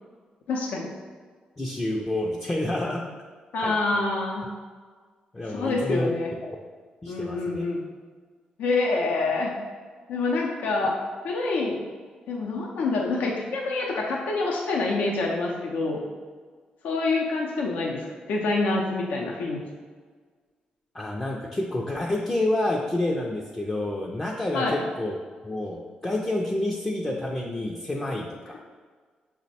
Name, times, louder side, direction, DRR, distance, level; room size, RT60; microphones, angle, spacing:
voice 1, 0.5-0.9 3.5-4.5 5.5-6.3 7.1-7.8 8.6-9.5 10.1-11.0 11.2-11.8 12.3-16.0 16.8-19.6 24.5-24.8, left 3 dB, 85° left, -1 dB, 0.5 m, -26 dB
voice 2, 1.6-3.1 3.6-3.8 5.3-6.1 6.4-6.6 7.0-7.7 20.9-25.2 25.4-28.6, left 1 dB, 15° left, -2 dB, 0.4 m, -28 dB
6.0 x 2.1 x 4.1 m, 1.5 s
cardioid pair, 125°, 3 cm